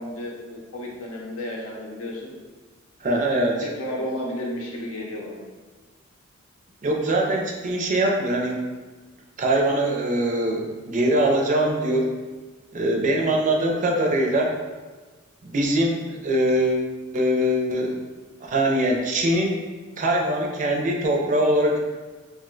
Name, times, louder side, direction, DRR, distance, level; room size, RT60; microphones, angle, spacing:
voice 1, 0.0-2.3 3.0-3.3 3.6-5.4, left 1 dB, 85° left, -2 dB, 0.7 m, -33 dB
voice 2, 3.0-3.6 6.8-8.6 9.4-12.1 12.7-14.5 15.4-16.9 17.1-18.0 18.4-19.6 20.0-21.8, right 1 dB, 35° right, 0 dB, 0.4 m, -22 dB
2.6 x 2.1 x 3.7 m, 1.3 s
head